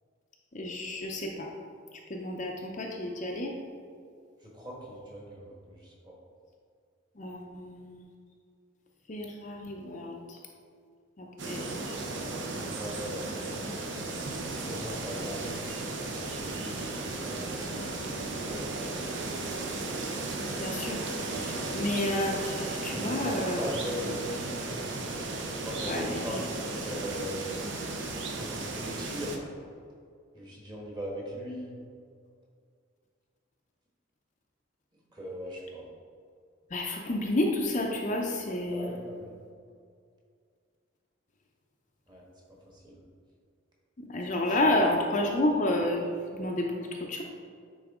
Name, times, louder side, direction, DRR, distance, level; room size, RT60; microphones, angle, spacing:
voice 1, 0.5-1.5 2.1-3.5 7.2-8.1 9.1-10.4 11.2-11.6 20.6-21.0 21.3-23.6 25.9-26.3 36.7-38.9 44.1-46.8 47.1-47.2, left 1 dB, 35° left, 0 dB, 0.5 m, -30 dB
voice 2, 4.4-6.2 12.5-17.6 18.0-19.5 22.8-24.7 25.6-27.5 28.3-29.4 30.3-31.8 35.1-35.9 38.7-39.3 42.1-42.2 42.7-43.0 44.5-44.7, equal, 20° right, -3 dB, 1.3 m, -40 dB
sound 1, 11.4-29.4, right 2 dB, 60° right, 0.8 m, -35 dB
9.5 x 3.9 x 3.6 m, 2.2 s
head